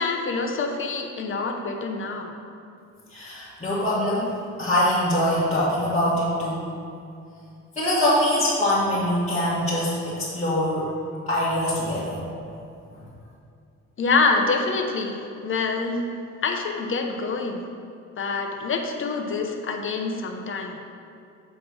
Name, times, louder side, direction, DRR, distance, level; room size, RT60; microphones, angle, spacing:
voice 1, 0.0-2.3 14.0-16.1 16.4-17.6 18.2-20.8, left 4 dB, 45° left, 3 dB, 0.9 m, -26 dB
voice 2, 3.1-4.3 4.6-6.7 7.7-10.8 11.3-12.2, left 1 dB, 25° left, -10 dB, 1.6 m, -23 dB
7.6 x 3.5 x 6.2 m, 2.5 s
cardioid pair, 90°, 30 cm